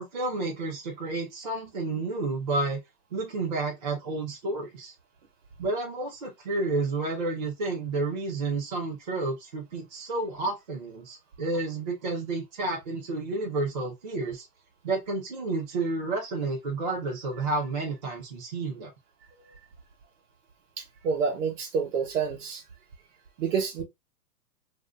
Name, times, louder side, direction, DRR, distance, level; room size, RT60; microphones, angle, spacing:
voice 1, 0.0-2.8 3.1-4.9 5.6-14.5 14.8-18.9, right 3 dB, 30° right, 0.4 m, -30 dB
voice 2, 20.8-22.6 23.4-23.8, right 6 dB, 50° right, 1.0 m, -28 dB
2.5 x 2.1 x 3.4 m
hypercardioid pair, 150°, 50 cm